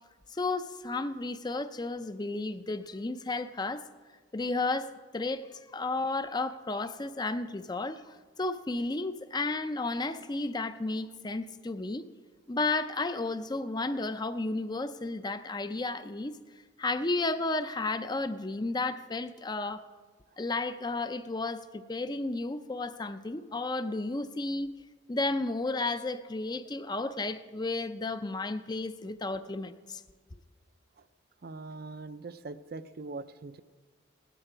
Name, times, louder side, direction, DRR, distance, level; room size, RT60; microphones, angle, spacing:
voice 1, 0.3-3.8 4.3-12.1 12.5-16.4 16.8-19.8 20.4-24.7 25.1-30.0, left 2 dB, 20° left, 0.5 m, -33 dB
voice 2, 31.4-33.6, right 3 dB, 50° right, 0.5 m, -42 dB
17.5 x 12.5 x 5.0 m
head